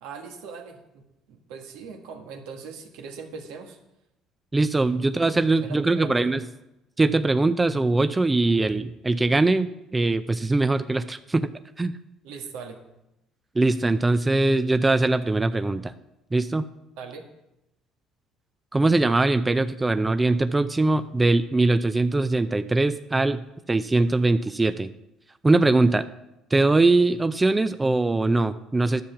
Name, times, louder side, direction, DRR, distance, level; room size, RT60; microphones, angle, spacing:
voice 1, 0.0-1.0 1.3-3.8 5.0-5.1 5.5-6.4 12.2-12.8 17.0-17.3, right 5 dB, 85° right, 3 dB, 1.6 m, -40 dB
voice 2, 4.5-6.4 7.0-11.5 11.8-11.9 13.6-15.9 16.3-16.7 18.7-23.4 23.7-24.9 25.4-26.1 26.5-29.0, right 2 dB, 15° right, 11 dB, 0.5 m, -21 dB
10.5 x 7.2 x 5.8 m, 0.89 s
supercardioid pair, 85°, 0 cm